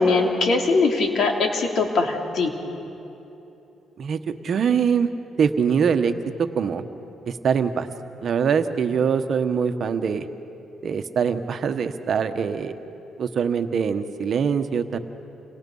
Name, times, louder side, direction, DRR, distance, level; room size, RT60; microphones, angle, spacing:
voice 1, 0.0-2.5, left 3 dB, 65° left, 2 dB, 3.1 m, -21 dB
voice 2, 4.0-5.1 5.4-6.1 6.4-6.8 7.2-7.9 8.2-10.3 10.8-12.8 13.2-15.0, right 6 dB, 55° right, 8 dB, 1.2 m, -23 dB
29.5 x 25.0 x 5.6 m, 3.0 s
cardioid pair, 90°, 0 cm